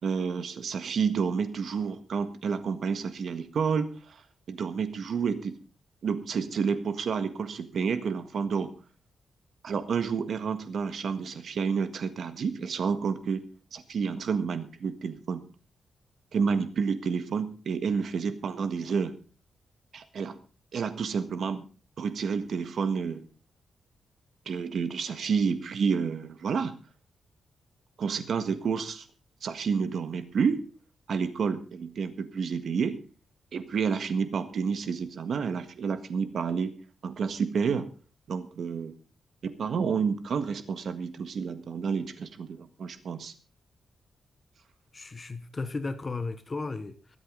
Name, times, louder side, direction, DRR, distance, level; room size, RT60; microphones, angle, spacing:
voice 1, 0.0-4.2 4.5-5.5 6.0-8.7 9.6-15.4 16.3-19.1 19.9-20.3 20.7-21.6 22.0-23.3 24.4-26.7 28.0-29.0 29.4-30.7 31.1-33.0 33.5-36.7 37.0-37.9 38.3-38.9 39.4-43.3, right 6 dB, 65° right, 1.6 m, -30 dB
voice 2, 44.9-47.2, left 3 dB, 30° left, 1.0 m, -35 dB
23.0 x 8.1 x 3.9 m
wide cardioid pair, 130°, 0 cm